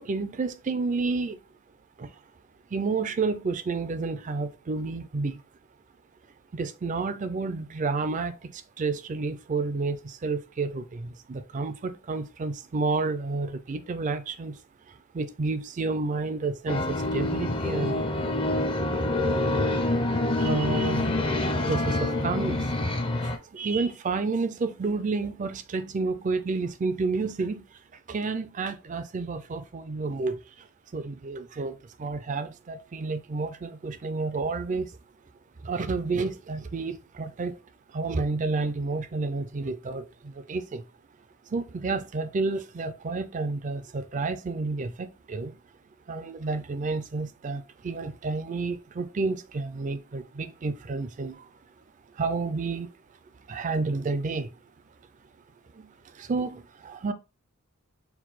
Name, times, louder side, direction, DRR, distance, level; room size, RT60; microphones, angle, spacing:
voice 1, 0.0-1.4 2.0-2.2 2.7-5.4 6.5-14.6 14.9-18.7 20.4-21.2 21.6-22.7 23.2-30.7 30.9-35.0 35.6-37.6 37.9-40.8 41.4-45.6 46.1-51.5 52.1-52.9 53.5-54.5 55.7-57.1, right 3 dB, 35° right, 0.4 m, -30 dB
sound 1, 16.7-23.4, left 2 dB, 25° left, 0.5 m, -26 dB
4.5 x 2.2 x 3.9 m
head